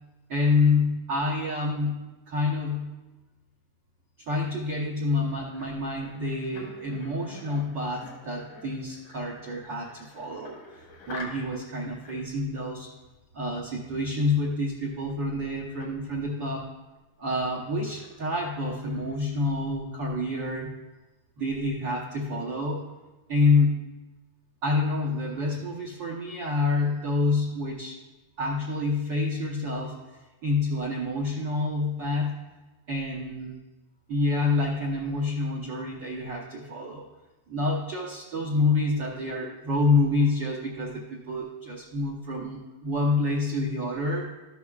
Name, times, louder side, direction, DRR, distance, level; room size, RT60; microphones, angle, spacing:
voice 1, 0.3-2.9 4.2-10.6 11.1-12.9 13.3-16.7 17.2-20.8 21.4-22.9 23.3-23.9 24.6-28.0 28.4-32.4 32.9-33.6 34.1-37.0 37.5-44.2, left 3 dB, 80° right, -3 dB, 1.0 m, -27 dB
sound 1, 5.1-11.6 11.9-12.4 15.1-15.2 15.4-15.9 17.0-17.1 17.5-19.2, left 3 dB, 70° left, 3.2 m, -47 dB
13.5 x 9.6 x 2.4 m, 1.1 s
omnidirectional pair, 3.5 m